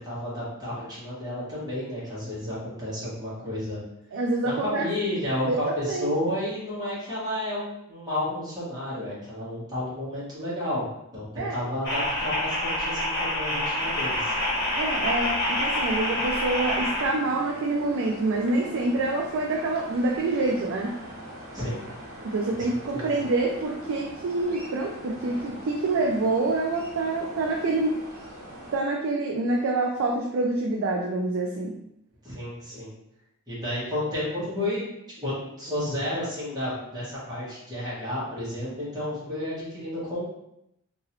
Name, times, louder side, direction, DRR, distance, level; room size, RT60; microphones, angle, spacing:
voice 1, 0.0-3.8 4.4-10.8 11.1-14.3 21.5-21.8 22.6-23.1 32.2-32.9 33.5-34.8 35.2-40.2, left 1 dB, 20° right, -10 dB, 1.3 m, -31 dB
voice 2, 4.1-4.9 5.5-6.1 11.4-11.6 14.8-20.9 22.2-28.0 28.7-31.7, right 2 dB, 65° right, 0 dB, 0.4 m, -26 dB
sound 1, 11.8-17.1, left 1 dB, 55° left, 1.2 m, -27 dB
sound 2, 13.8-28.8, right 1 dB, 80° right, 1.1 m, -42 dB
2.9 x 2.6 x 2.9 m, 0.82 s
head